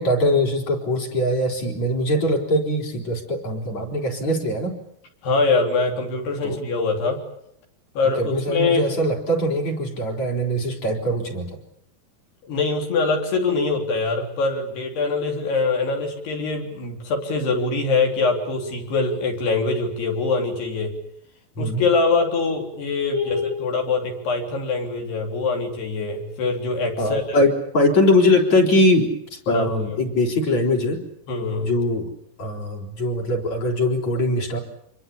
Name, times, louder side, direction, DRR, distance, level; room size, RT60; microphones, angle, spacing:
voice 1, 0.0-4.8 6.4-6.6 8.2-11.6 21.6-21.8 23.1-23.7 27.0-31.0 31.6-32.1 32.4-34.6, left 1 dB, 40° left, 0 dB, 5.2 m, -22 dB
voice 2, 5.2-7.2 8.0-8.9 12.5-20.9 21.6-27.4 29.5-30.0 31.3-31.7, left 3 dB, 70° left, 2 dB, 5.8 m, -23 dB
27.0 x 22.5 x 8.6 m, 0.74 s
omnidirectional pair, 4.9 m